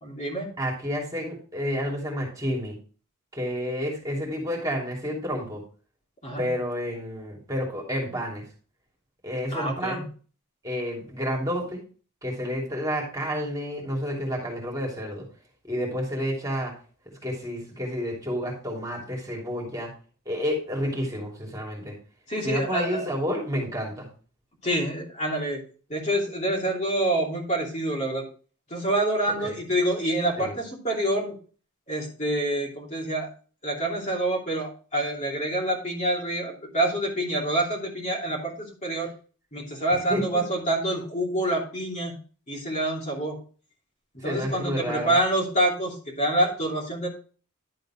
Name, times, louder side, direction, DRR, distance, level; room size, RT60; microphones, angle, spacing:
voice 1, 0.0-0.5 6.2-6.5 9.5-10.1 22.3-23.0 24.6-25.6 25.9-28.2 28.7-31.3 31.9-33.3 33.6-39.1 39.5-42.1 42.5-43.4 44.2-47.1, right 1 dB, 35° left, -2 dB, 2.9 m, -27 dB
voice 2, 0.6-2.7 3.3-5.6 6.4-8.5 9.2-10.0 10.6-11.8 12.2-15.2 15.6-16.7 17.2-19.9 20.2-21.9 22.4-24.1 29.4-29.6 30.4-30.5 39.9-40.4 44.2-45.2, equal, 15° right, -1 dB, 3.0 m, -30 dB
11.0 x 7.7 x 3.1 m, 0.38 s
head